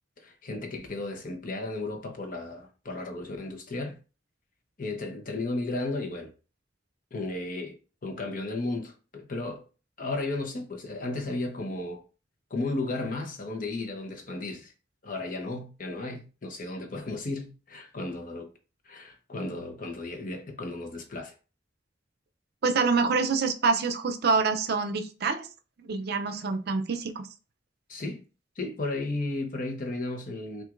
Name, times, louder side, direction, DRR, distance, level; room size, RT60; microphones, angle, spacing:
voice 1, 0.2-4.0 4.8-6.3 7.1-7.8 8.0-9.6 10.0-12.0 12.5-14.7 15.0-18.5 18.8-21.3 27.9-28.2 28.6-30.6, left 2 dB, 45° left, 0.8 m, -34 dB
voice 2, 22.6-25.5 25.8-27.3, right 4 dB, 60° right, 0.5 m, -26 dB
5.8 x 2.5 x 2.5 m
head